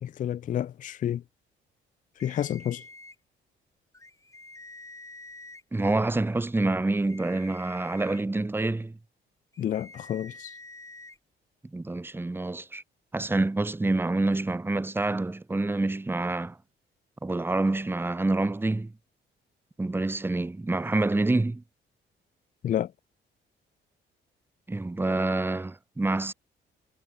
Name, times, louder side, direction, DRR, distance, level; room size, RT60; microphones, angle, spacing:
voice 1, 0.0-1.2 2.2-2.8 9.6-10.5 22.6-22.9, left 10 dB, 40° left, 0.4 m, -30 dB
sound 1, 2.2-3.2 3.9-5.6 6.9-8.2 9.5-11.2, left 2 dB, 15° left, 5.1 m, -47 dB
voice 2, 5.7-9.0 11.7-12.8 13.1-16.6 17.2-18.9 19.8-21.6 24.7-26.3, right 2 dB, 10° right, 0.8 m, -27 dB
cardioid pair, 90°, 20 cm